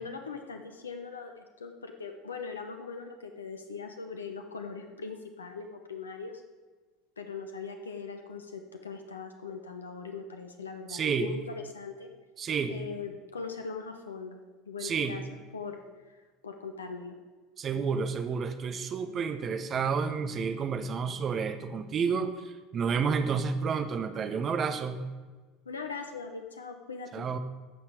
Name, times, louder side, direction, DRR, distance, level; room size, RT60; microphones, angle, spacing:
voice 1, 0.0-6.4 7.2-12.1 12.7-14.4 14.7-15.2 15.5-16.2 16.4-17.2 25.7-27.3, left 5 dB, 80° left, 5 dB, 0.7 m, -40 dB
voice 2, 10.9-11.3 12.4-12.8 14.8-15.2 17.6-25.0 27.1-27.4, right 5 dB, 35° right, 10 dB, 1.0 m, -30 dB
15.5 x 5.9 x 4.9 m, 1.3 s
figure-of-eight pair, 75°, 0 cm